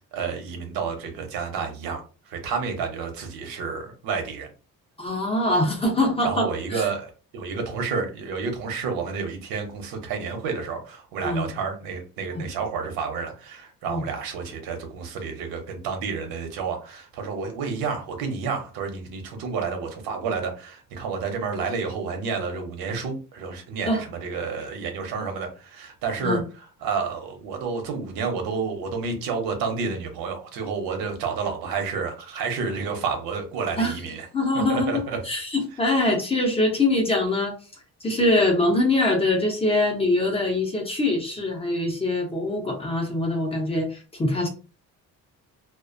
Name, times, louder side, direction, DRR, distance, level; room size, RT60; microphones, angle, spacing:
voice 1, 0.1-4.5 6.2-26.4 26.8-34.3 34.7-35.2, right 5 dB, 90° right, 4 dB, 0.8 m, -30 dB
voice 2, 5.0-6.9 11.2-11.5 12.3-12.4 13.9-14.0 23.8-24.0 26.2-26.4 33.8-34.0 34.3-37.5 38.0-44.5, left 2 dB, 15° left, 2 dB, 0.5 m, -23 dB
2.4 x 2.1 x 2.5 m, 0.35 s
cardioid pair, 155°, 34 cm